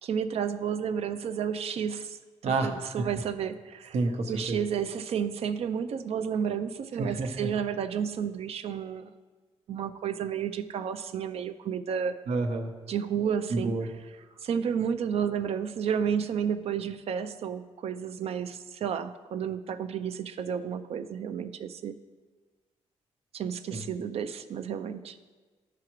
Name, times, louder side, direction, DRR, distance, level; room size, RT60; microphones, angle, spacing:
voice 1, 0.0-2.2 2.4-4.0 4.3-9.1 9.7-12.2 12.9-13.8 14.4-21.9 23.3-25.2, right 7 dB, 65° right, 10 dB, 0.4 m, -31 dB
voice 2, 2.4-3.1 3.9-4.6 7.0-7.3 12.3-12.7 13.5-13.9 23.7-23.8, right 3 dB, 80° right, 4 dB, 0.9 m, -29 dB
14.0 x 4.8 x 3.0 m, 1.4 s
wide cardioid pair, 145°, 11 cm